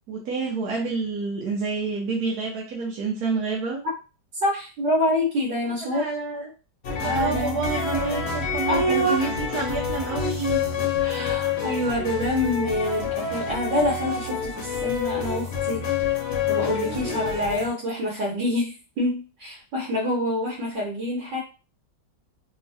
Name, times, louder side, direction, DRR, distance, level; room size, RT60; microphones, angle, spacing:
voice 1, 0.1-3.8 5.8-6.5 6.9-10.6 16.8-17.2, right 4 dB, 65° right, -4 dB, 1.2 m, -28 dB
voice 2, 4.4-6.0 7.0-7.6 8.7-9.3 11.0-15.8 16.5-21.4, left 1 dB, 80° right, -6 dB, 1.6 m, -26 dB
sound 1, 6.8-17.7, left 6 dB, 55° left, 0.7 m, -28 dB
3.6 x 2.1 x 2.6 m, 0.32 s
omnidirectional pair, 1.9 m